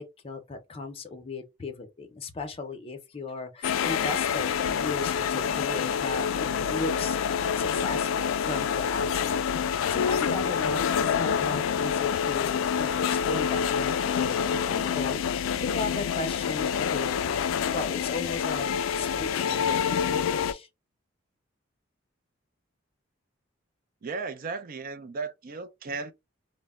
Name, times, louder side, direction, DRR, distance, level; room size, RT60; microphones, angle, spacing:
voice 1, 0.0-7.2 7.6-14.4 14.7-18.7 18.9-20.7, left 3 dB, 30° left, 0.6 m, -36 dB
sound 1, 3.6-20.5, left 7 dB, 75° left, 0.3 m, -27 dB
voice 2, 24.0-26.1, right 4 dB, 45° right, 0.4 m, -35 dB
2.1 x 2.1 x 3.4 m
head